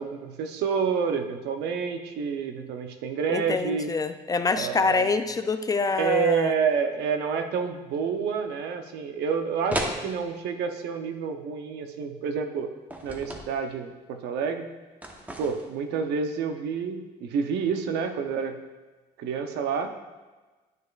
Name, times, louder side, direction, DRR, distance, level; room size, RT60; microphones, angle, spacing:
voice 1, 0.0-3.9 4.5-5.2 6.0-12.7 13.0-14.7 15.4-18.6 19.2-19.9, right 6 dB, 80° right, 6 dB, 0.7 m, -28 dB
voice 2, 3.3-6.5, left 4 dB, 20° left, 9 dB, 0.3 m, -26 dB
sound 1, 9.7-10.0 12.9-13.5 15.0-15.8, equal, 10° right, 0.9 m, -32 dB
10.5 x 6.3 x 2.4 m, 1.3 s
cardioid pair, 110°, 17 cm